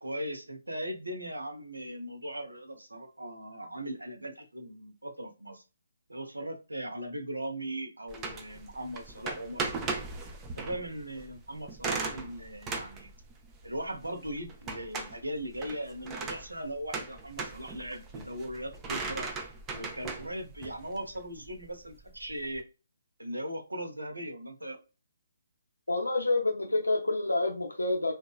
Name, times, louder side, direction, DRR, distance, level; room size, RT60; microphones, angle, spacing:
voice 1, 0.0-5.6 6.1-10.0 10.5-13.1 13.6-19.2 19.7-22.6 23.2-24.8, right 1 dB, 80° right, 4 dB, 0.7 m, -39 dB
sound 1, 8.1-22.6, right 4 dB, 15° right, 0.4 m, -39 dB
voice 2, 25.9-28.1, left 2 dB, 80° left, 2 dB, 0.4 m, -28 dB
2.8 x 2.2 x 2.3 m, 0.31 s
figure-of-eight pair, 135°, 0 cm